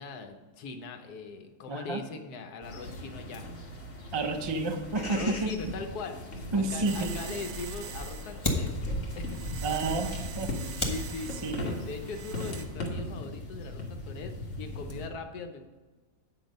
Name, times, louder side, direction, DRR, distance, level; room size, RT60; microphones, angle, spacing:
voice 1, 0.0-3.5 4.2-4.3 5.1-8.7 9.1-9.9 10.9-15.6, left 4 dB, 80° left, 6 dB, 1.3 m, -41 dB
voice 2, 1.7-2.0 4.1-5.5 6.5-7.2 9.6-10.6 11.4-11.7, right 3 dB, 45° right, 5 dB, 0.3 m, -30 dB
sound 1, 2.6-15.1, left 1 dB, 50° left, 1.7 m, -38 dB
sound 2, 6.8-12.7, right 7 dB, 70° right, 1.2 m, -45 dB
Fire, 7.5-12.9, left 1 dB, 20° left, 1.1 m, -37 dB
8.6 x 6.0 x 5.2 m, 1.3 s
omnidirectional pair, 1.6 m